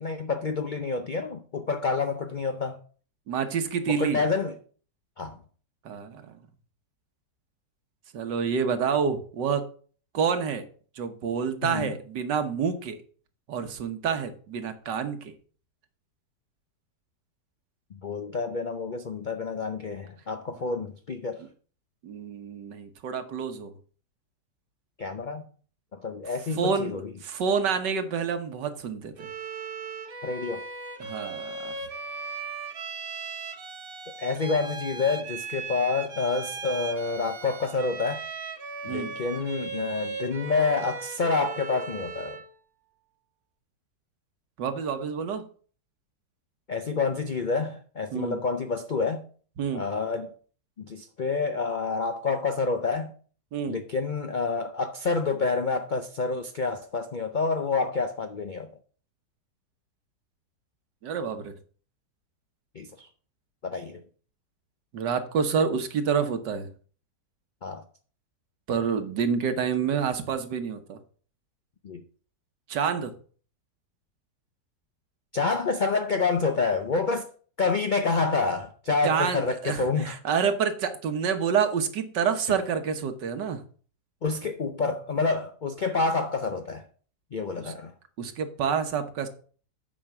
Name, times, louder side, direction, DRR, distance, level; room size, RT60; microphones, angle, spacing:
voice 1, 0.0-2.8 3.9-4.5 5.2-5.4 11.6-11.9 17.9-21.4 25.0-25.4 25.9-27.1 30.2-30.6 34.2-38.3 38.8-42.4 46.7-49.3 49.7-50.3 50.8-53.1 53.7-58.7 62.7-63.1 63.6-64.0 67.6-67.8 71.8-72.0 75.3-77.3 77.6-80.2 84.2-86.8 87.3-87.9, left 4 dB, 75° left, 0.4 m, -28 dB
voice 2, 3.3-4.2 5.9-6.4 8.1-9.7 10.1-10.7 11.0-13.0 13.5-15.3 22.0-23.7 26.5-29.3 31.0-31.7 38.8-39.2 44.6-45.5 48.1-48.4 49.6-49.8 53.5-53.8 61.0-61.5 64.9-66.7 68.7-71.0 72.7-73.1 79.0-83.6 87.6-87.7 88.2-89.3, right 6 dB, 85° right, 1.7 m, -28 dB
Bowed string instrument, 29.2-42.5, right 4 dB, 45° right, 0.9 m, -37 dB
8.8 x 5.3 x 5.9 m
omnidirectional pair, 1.8 m